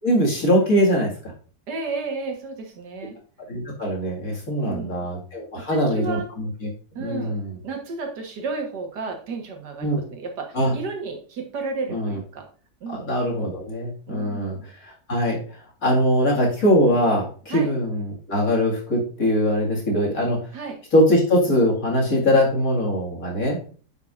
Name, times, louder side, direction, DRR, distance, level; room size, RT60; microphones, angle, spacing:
voice 1, 0.0-1.1 3.5-6.5 7.0-7.4 9.8-10.0 10.5-10.7 11.9-12.2 12.9-14.6 14.8-15.4 15.8-20.4 20.9-23.6, equal, 50° left, -2 dB, 2.4 m, -21 dB
voice 2, 1.7-3.1 4.6-5.1 5.6-6.3 6.9-7.4 7.6-12.5 12.8-13.1 14.1-14.7 17.5-17.7 20.5-20.8, right 4 dB, 65° right, 3 dB, 1.8 m, -32 dB
9.6 x 5.7 x 2.5 m, 0.41 s
omnidirectional pair, 2.0 m